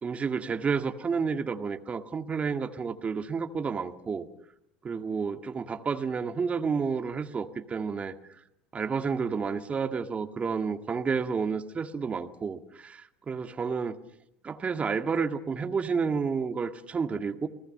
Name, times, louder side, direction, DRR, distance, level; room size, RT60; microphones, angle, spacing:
voice 1, 0.0-4.3 4.8-8.1 8.7-14.0 14.4-17.5, right 5 dB, 30° right, 7 dB, 2.0 m, -30 dB
29.5 x 19.0 x 6.7 m, 0.78 s
hypercardioid pair, 80°, 5 cm